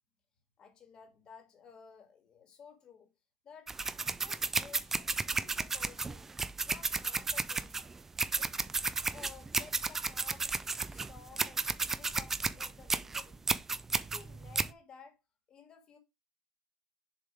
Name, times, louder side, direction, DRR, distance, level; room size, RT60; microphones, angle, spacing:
voice 1, 0.6-3.1 3.4-6.3 6.6-8.0 8.4-8.7 9.1-13.5 13.9-15.2 15.5-16.0, left 6 dB, 30° left, 1.9 m, -55 dB
sound 1, 3.7-14.7, right 4 dB, 15° right, 0.3 m, -33 dB
6.9 x 2.9 x 4.9 m
cardioid pair, 150°, 3 cm